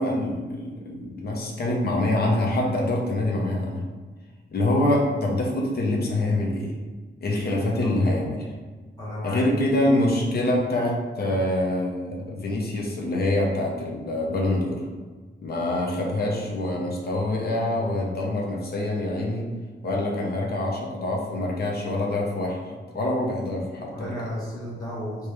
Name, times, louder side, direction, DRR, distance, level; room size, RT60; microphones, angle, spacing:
voice 1, 0.0-3.8 4.5-6.7 7.2-8.5 9.2-14.8 15.4-19.4 19.8-24.1, left 1 dB, 55° left, -2 dB, 0.8 m, -25 dB
voice 2, 7.6-7.9 9.0-9.5 23.9-25.3, equal, 20° left, -7 dB, 1.2 m, -34 dB
3.2 x 2.9 x 3.3 m, 1.4 s
wide cardioid pair, 145°, 19 cm